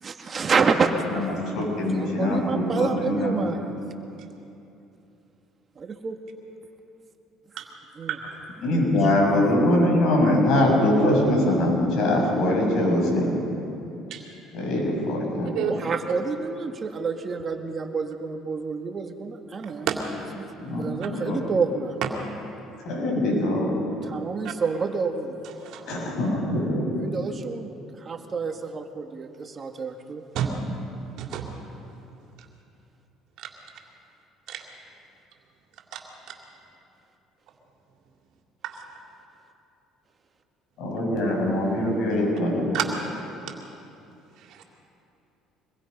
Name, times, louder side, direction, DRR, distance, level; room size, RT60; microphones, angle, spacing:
voice 1, 0.0-0.9 1.5-3.8 5.8-6.2 8.0-8.2 15.7-19.9 20.4-20.5 20.8-22.0 23.9-25.5 27.0-27.7 28.0-30.2, right 5 dB, 35° right, 5 dB, 1.8 m, -28 dB
voice 2, 1.1-3.6 8.6-13.4 14.5-15.5 20.6-21.4 22.8-23.8 25.9-27.0 40.8-42.8, left 1 dB, 70° left, -1 dB, 7.2 m, -23 dB
voice 3, 19.6-20.0 25.6-26.1 30.3-30.5 31.2-31.5 33.4-33.5 34.5-34.6 35.9-36.0 36.3-36.4 38.6-38.8 42.7-42.8 43.5-43.6 44.5-44.6, right 11 dB, 70° right, 2 dB, 2.9 m, -30 dB
25.0 x 21.5 x 5.4 m, 2.8 s
supercardioid pair, 90°, 0 cm